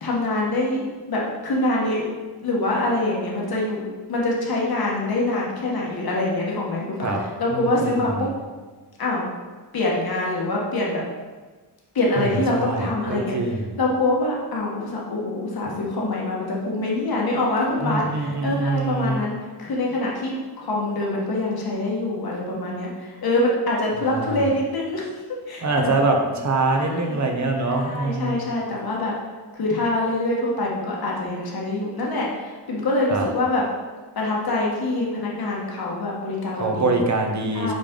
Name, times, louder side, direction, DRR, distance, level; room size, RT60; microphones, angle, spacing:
voice 1, 0.0-0.8 1.1-2.0 2.4-3.8 4.1-8.3 9.0-9.3 9.7-11.0 11.9-13.3 13.8-25.0 25.5-25.9 26.7-27.2 27.7-29.1 29.5-33.6 34.1-37.0 37.5-37.7, left 2 dB, 60° left, -3 dB, 1.3 m, -25 dB
voice 2, 7.5-8.3 12.2-13.8 17.8-19.2 24.0-24.5 25.6-28.5 33.1-33.3 36.6-37.7, right 3 dB, 45° right, 2 dB, 0.9 m, -24 dB
5.3 x 5.2 x 3.7 m, 1.3 s
wide cardioid pair, 125°, 41 cm